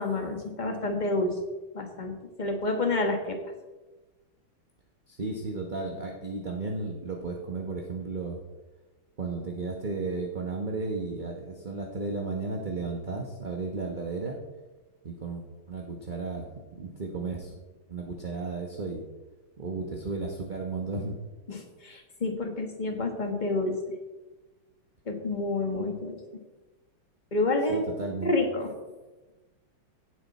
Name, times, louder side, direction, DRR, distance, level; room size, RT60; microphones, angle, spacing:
voice 1, 0.0-1.4 1.7-3.4 21.5-23.8 25.0-26.2 27.3-27.9 28.2-28.7, left 2 dB, 25° left, 3 dB, 1.6 m, -29 dB
voice 2, 5.1-8.4 9.2-14.4 15.0-17.5 17.9-19.0 19.6-21.2 27.7-28.3, right 3 dB, 30° right, 1 dB, 1.0 m, -34 dB
16.5 x 7.9 x 4.2 m, 1.1 s
omnidirectional pair, 2.3 m